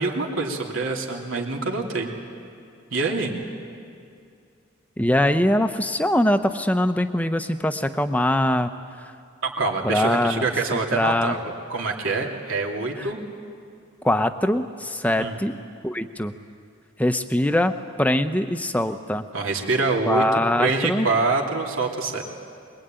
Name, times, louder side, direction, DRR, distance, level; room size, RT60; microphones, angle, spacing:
voice 1, 0.0-2.1 2.9-3.3 9.4-13.2 15.2-15.4 19.3-22.2, right 3 dB, 80° right, 0 dB, 2.9 m, -25 dB
voice 2, 5.0-8.7 9.8-10.4 10.7-11.4 13.0-13.1 14.0-15.5 15.8-16.3 17.0-19.3 20.1-21.1, left 1 dB, 5° left, 8 dB, 0.8 m, -22 dB
23.0 x 22.0 x 9.0 m, 2.4 s
head